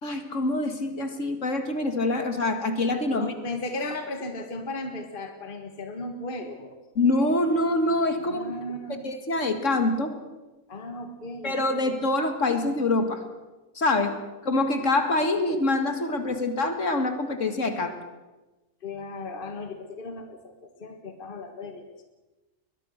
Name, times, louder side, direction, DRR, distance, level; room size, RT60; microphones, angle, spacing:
voice 1, 0.0-3.3 7.0-8.5 9.0-10.2 11.4-13.2 13.8-14.1 14.4-18.0, left 2 dB, 55° left, 7 dB, 2.4 m, -25 dB
voice 2, 3.1-6.8 8.2-9.0 10.7-12.0 18.8-22.0, left 2 dB, 40° left, 7 dB, 1.8 m, -36 dB
22.0 x 21.5 x 6.6 m, 1.1 s
omnidirectional pair, 1.5 m